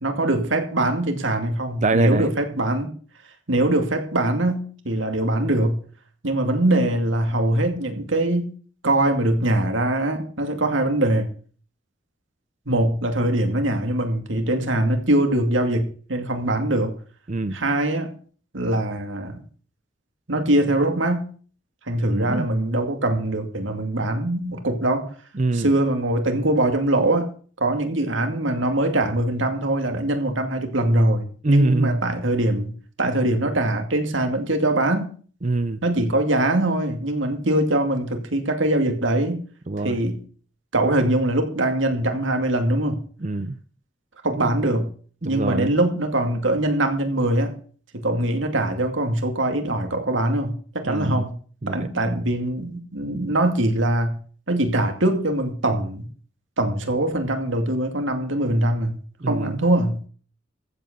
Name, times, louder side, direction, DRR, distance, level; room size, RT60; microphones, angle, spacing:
voice 1, 0.0-2.9 3.5-5.8 6.2-8.5 8.8-11.3 12.7-16.9 17.5-18.1 18.5-19.4 20.3-21.3 21.9-25.1 25.5-27.3 27.6-32.7 33.0-35.1 35.8-39.4 39.8-40.2 40.7-43.0 44.2-44.9 45.2-47.5 47.9-51.4 51.7-54.2 54.5-56.1 56.6-59.0 59.3-60.0, right 1 dB, 90° right, 5 dB, 2.5 m, -22 dB
voice 2, 1.8-2.3 17.3-17.6 22.1-22.5 25.4-25.7 31.4-32.0 35.4-35.8 39.7-40.0 43.2-43.6 45.2-45.7 50.8-51.3 51.6-51.9 59.2-59.6, right 2 dB, 40° right, 12 dB, 0.6 m, -24 dB
14.5 x 8.0 x 6.7 m, 0.42 s
head